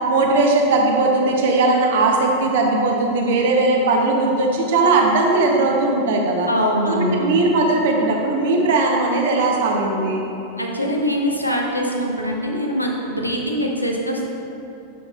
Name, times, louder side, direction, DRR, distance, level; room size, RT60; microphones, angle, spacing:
voice 1, 0.1-6.5 6.8-10.2, right 2 dB, 55° right, 1 dB, 0.8 m, -18 dB
voice 2, 6.5-7.3 10.6-14.2, equal, 90° left, -1 dB, 0.7 m, -23 dB
7.0 x 6.2 x 2.4 m, 2.8 s
figure-of-eight pair, 90°, 0 cm